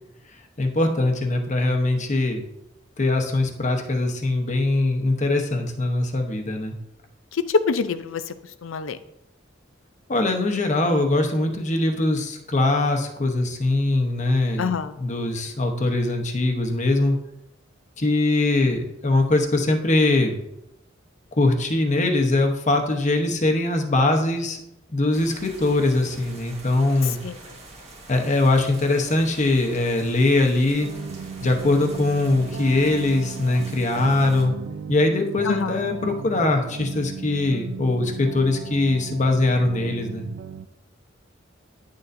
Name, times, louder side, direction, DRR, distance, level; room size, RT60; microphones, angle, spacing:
voice 1, 0.6-2.4 3.0-6.7 10.1-17.1 18.0-20.4 21.3-24.6 24.9-27.2 28.1-30.9 31.4-34.5 34.9-40.3, left 2 dB, 40° left, 4 dB, 0.9 m, -22 dB
voice 2, 7.7-8.2 8.6-9.0 14.6-14.9 27.2-27.4 35.5-35.8, left 5 dB, 85° left, 13 dB, 0.5 m, -26 dB
sound 1, 25.1-34.4, right 2 dB, 35° right, 1.4 m, -44 dB
sound 2, 30.8-40.7, right 6 dB, 60° right, 0.3 m, -36 dB
9.7 x 6.6 x 2.6 m, 0.86 s
head